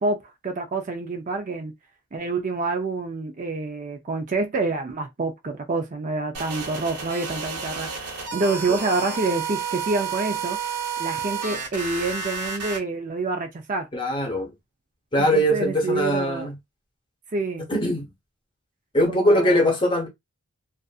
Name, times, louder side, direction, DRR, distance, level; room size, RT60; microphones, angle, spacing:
voice 1, 0.0-1.7 2.1-10.6 11.0-13.9 15.2-16.5 17.3-17.7 19.1-19.7, right 3 dB, 35° right, 0.5 m, -27 dB
sound 1, 6.3-12.8, right 5 dB, 90° right, 1.1 m, -31 dB
voice 2, 13.9-14.5 15.1-16.5 17.7-18.1 18.9-20.1, equal, 20° left, 0.8 m, -21 dB
2.5 x 2.5 x 2.4 m
head